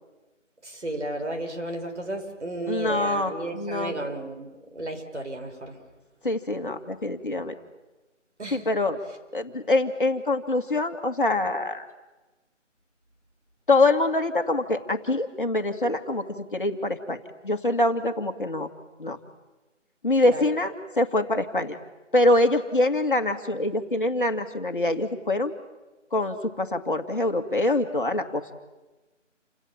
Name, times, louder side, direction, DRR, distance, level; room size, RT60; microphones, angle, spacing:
voice 1, 0.6-5.7 8.4-8.6 20.2-20.4, right 1 dB, 65° right, 4 dB, 6.0 m, -33 dB
voice 2, 2.7-4.0 6.2-7.6 8.5-9.0 9.3-11.9 13.7-17.2 17.4-18.7 19.0-19.2 20.0-21.8 22.1-25.5 26.1-28.4, left 2 dB, 40° left, 6 dB, 2.2 m, -24 dB
29.5 x 26.5 x 7.3 m, 1.1 s
figure-of-eight pair, 175°, 37 cm